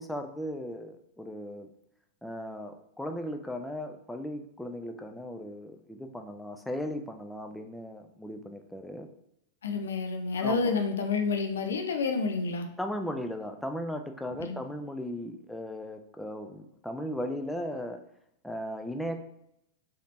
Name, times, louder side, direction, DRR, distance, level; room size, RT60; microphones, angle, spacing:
voice 1, 0.0-1.7 2.2-9.1 10.4-10.8 12.8-18.0 18.4-19.2, equal, 5° left, 5 dB, 0.3 m, -37 dB
voice 2, 9.6-12.7 14.4-14.6, left 4 dB, 85° left, 6 dB, 0.5 m, -29 dB
3.4 x 2.7 x 2.5 m, 0.78 s
hypercardioid pair, 115°, 0 cm